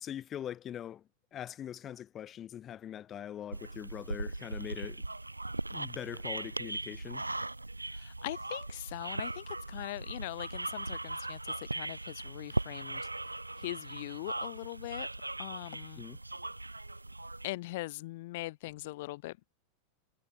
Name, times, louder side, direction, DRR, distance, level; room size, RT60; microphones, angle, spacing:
voice 1, 0.0-5.0 5.7-7.3 16.0-16.2, left 10 dB, 30° left, 5.1 m, -42 dB
sound 1, 3.5-17.5, right 2 dB, 85° right, 1.0 m, -39 dB
voice 2, 7.9-13.1 13.6-15.1 15.4-16.0 17.4-19.4, left 19 dB, 50° left, 1.4 m, -41 dB
figure-of-eight pair, 90°, 0 cm